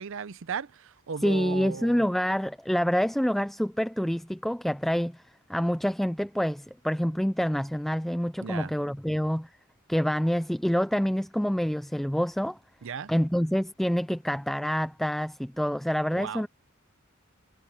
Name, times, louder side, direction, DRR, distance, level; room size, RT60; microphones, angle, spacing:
voice 1, 0.0-2.1 8.4-8.7 12.8-13.1 16.1-16.4, right 6 dB, 70° right, 0.6 m, -36 dB
voice 2, 1.2-5.2 5.5-9.5 9.9-12.6 13.1-16.5, equal, ahead, 0.3 m, -27 dB
head